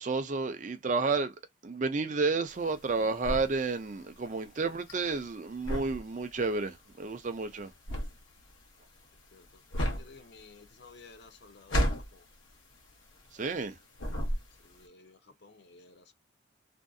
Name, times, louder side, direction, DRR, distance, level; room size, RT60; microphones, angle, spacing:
voice 1, 0.0-1.3 1.6-7.7 13.3-13.8, right 4 dB, 40° right, 0.4 m, -31 dB
sound 1, 2.5-13.7 14.0-14.8, equal, 80° left, 0.8 m, -34 dB
voice 2, 9.9-12.2 14.6-16.1, left 3 dB, 55° left, 0.5 m, -54 dB
2.6 x 2.4 x 2.3 m
head